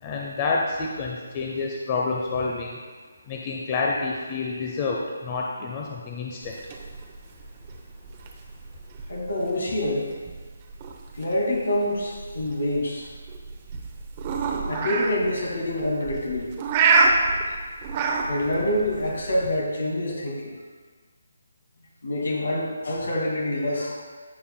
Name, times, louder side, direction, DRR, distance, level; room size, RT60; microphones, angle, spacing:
voice 1, 0.0-2.8 3.3-6.5, left 4 dB, 25° left, -1 dB, 0.8 m, -28 dB
sound 1, 6.4-19.6, right 4 dB, 30° right, 0.8 m, -28 dB
voice 2, 9.1-10.1 11.1-13.1 14.6-16.6 17.5-17.6 18.3-20.6 22.0-24.0, left 1 dB, 75° left, -1 dB, 2.2 m, -26 dB
15.5 x 5.6 x 2.2 m, 1.5 s
figure-of-eight pair, 155°, 0 cm